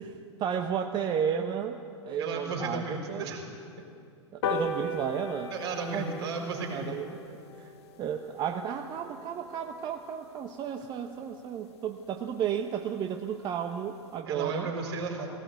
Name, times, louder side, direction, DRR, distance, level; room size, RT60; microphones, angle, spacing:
voice 1, 0.0-3.3 4.3-5.5 5.9-6.1 6.7-7.1 7.5-14.7, right 8 dB, 30° right, 5 dB, 1.0 m, -33 dB
voice 2, 2.2-3.5 5.5-7.0 14.2-15.3, right 4 dB, 60° right, 0 dB, 4.8 m, -34 dB
sound 1, 4.4-11.2 11.6-11.7 12.0-12.1 12.4-12.5 12.8-12.9 13.2-13.4 13.9-14.0, left 3 dB, 60° left, 1.9 m, -38 dB
18.0 x 18.0 x 8.0 m, 2.5 s
figure-of-eight pair, 95°, 15 cm